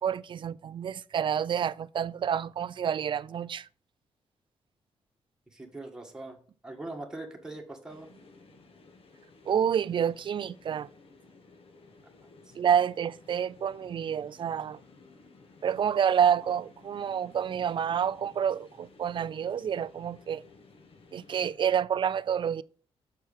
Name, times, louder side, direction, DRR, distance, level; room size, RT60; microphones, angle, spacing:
voice 1, 0.0-3.7 9.5-10.9 12.6-14.8 15.6-20.4 21.1-22.6, right 8 dB, 50° right, 0.3 m, -28 dB
voice 2, 5.5-6.4 6.6-8.1 12.5-12.6, right 2 dB, 5° right, 1.7 m, -41 dB
sound 1, 7.9-21.6, left 3 dB, 60° left, 1.3 m, -56 dB
6.7 x 4.6 x 5.0 m
cardioid pair, 75°, 11 cm